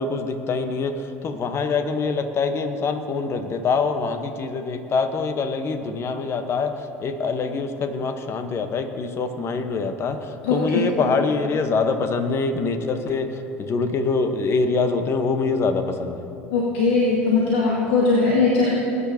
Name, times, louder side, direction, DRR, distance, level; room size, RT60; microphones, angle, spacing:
voice 1, 0.0-16.2, left 4 dB, 40° left, 7 dB, 1.1 m, -24 dB
voice 2, 16.5-18.7, left 4 dB, 75° left, -4 dB, 1.7 m, -19 dB
20.0 x 9.7 x 2.9 m, 2.8 s
hypercardioid pair, 70°, 6 cm